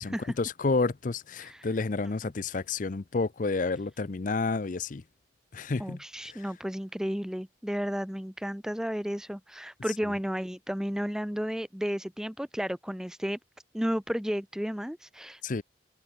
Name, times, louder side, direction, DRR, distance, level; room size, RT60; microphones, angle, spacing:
voice 1, 0.0-5.0 5.5-6.4 15.4-15.6, left 3 dB, 45° left, 0.6 m, -30 dB
voice 2, 5.8-13.4 13.7-15.4, equal, 5° right, 0.6 m, -33 dB
head